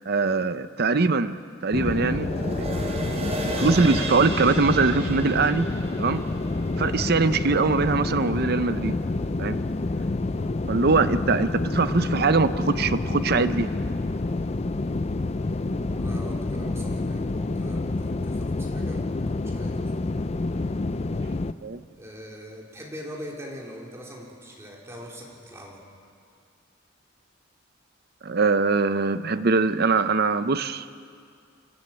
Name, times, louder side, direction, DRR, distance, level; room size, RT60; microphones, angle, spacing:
voice 1, 0.1-1.4 1.6-2.3 3.2-5.7 6.0-6.2 6.8-9.0 9.4-9.6 10.7-13.7 21.6-21.8 28.2-30.8, right 4 dB, 50° right, 12 dB, 0.7 m, -22 dB
sound 1, 1.7-21.5, left 2 dB, 30° left, 0.5 m, -28 dB
sound 2, 2.1-8.7 9.1-9.2, right 1 dB, 35° right, 3.3 m, -35 dB
voice 2, 15.9-19.9 21.9-25.8, equal, 15° right, -2 dB, 3.5 m, -42 dB
28.5 x 13.0 x 8.7 m, 2.3 s
head